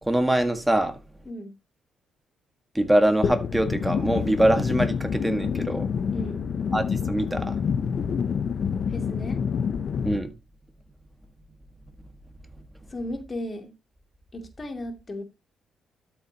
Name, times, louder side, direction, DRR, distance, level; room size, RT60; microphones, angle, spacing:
voice 1, 0.0-1.0 2.7-5.9 6.7-7.6 10.0-10.3, right 1 dB, 10° right, 1.6 m, -23 dB
sound 1, 3.2-10.2, left 6 dB, 55° left, 0.8 m, -27 dB
voice 2, 6.1-6.4 8.9-9.4 12.9-13.7 14.3-15.2, left 1 dB, 30° left, 2.5 m, -35 dB
12.5 x 7.4 x 2.9 m
cardioid pair, 90°, 0 cm